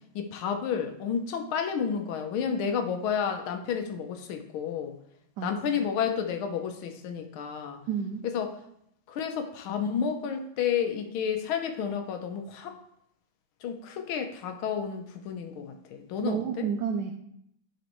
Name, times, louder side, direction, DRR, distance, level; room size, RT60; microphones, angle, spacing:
voice 1, 0.1-5.0 5.4-7.8 8.2-8.5 9.1-12.8 13.6-16.7, left 7 dB, 85° left, 6 dB, 1.6 m, -31 dB
voice 2, 5.4-5.9 7.9-8.3 16.2-17.1, right 7 dB, 75° right, 3 dB, 1.0 m, -31 dB
12.0 x 4.1 x 3.1 m, 0.74 s
omnidirectional pair, 2.2 m